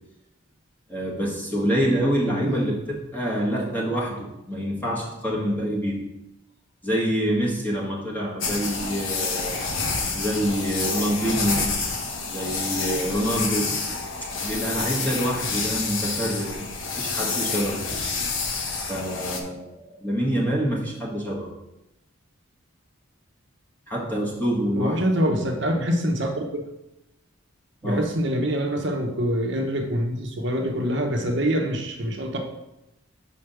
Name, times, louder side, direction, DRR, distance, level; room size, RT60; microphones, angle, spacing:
voice 1, 0.9-2.8 3.1-6.0 6.8-9.6 10.1-11.8 12.2-13.8 14.4-17.8 18.9-21.5 23.9-25.0 25.3-25.5 27.8-28.1, equal, 10° left, -4 dB, 1.5 m, -26 dB
sound 1, 8.4-19.4, left 4 dB, 75° left, 1.0 m, -28 dB
voice 2, 24.8-26.6 27.8-32.4, equal, 60° right, 2 dB, 0.9 m, -25 dB
5.6 x 4.8 x 6.1 m, 0.91 s
head